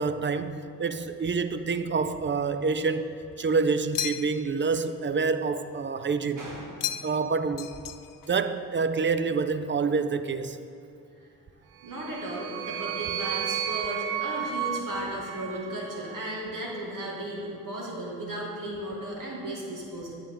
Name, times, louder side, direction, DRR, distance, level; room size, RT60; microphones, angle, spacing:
voice 1, 0.0-6.4 7.0-7.7 8.3-10.6, right 4 dB, 30° right, 11 dB, 0.5 m, -27 dB
sound 1, 3.9-4.6 6.8-7.3 7.6-8.3, left 11 dB, 60° left, 0.5 m, -34 dB
voice 2, 6.4-6.7 11.8-20.2, right 1 dB, 55° right, -3 dB, 2.4 m, -35 dB
sound 2, 11.8-16.2, right 9 dB, 75° right, 0.5 m, -33 dB
8.9 x 8.6 x 3.8 m, 2.5 s
supercardioid pair, 40°, 37 cm